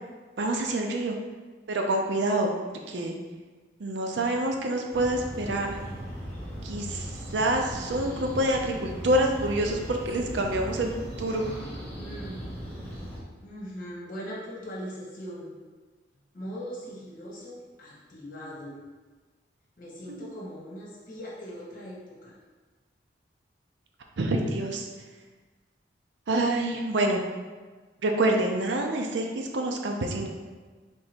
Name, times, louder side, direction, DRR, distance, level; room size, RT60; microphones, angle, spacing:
voice 1, 0.4-1.2 1.7-2.5 2.9-3.1 3.8-5.8 6.6-10.9 11.2-11.4 20.1-20.3 24.2-24.9 26.3-27.2 28.0-30.3, right 1 dB, 75° right, 2 dB, 0.5 m, -27 dB
sound 1, 4.9-13.2, equal, 10° left, 1.5 m, -38 dB
voice 2, 12.0-12.5 12.8-12.9 13.4-15.6 16.3-18.8 19.8-22.4, equal, 50° left, -5 dB, 1.2 m, -40 dB
3.6 x 2.9 x 4.3 m, 1.3 s
head